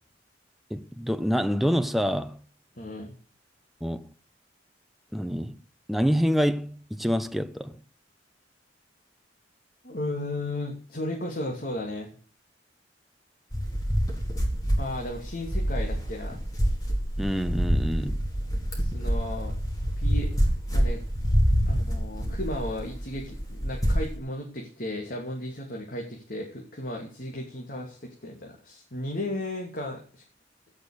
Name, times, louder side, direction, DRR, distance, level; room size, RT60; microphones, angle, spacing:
voice 1, 0.7-2.4 3.8-4.1 5.1-5.6 5.9-7.8 17.2-18.2, equal, ahead, 0.8 m, -26 dB
voice 2, 2.8-3.1 9.8-12.1 14.8-16.4 18.8-19.5 20.0-20.3 20.7-21.0 21.7-30.2, left 1 dB, 50° left, 2.8 m, -35 dB
sound 1, 13.5-24.2, equal, 20° left, 4.3 m, -26 dB
16.0 x 6.6 x 6.7 m
head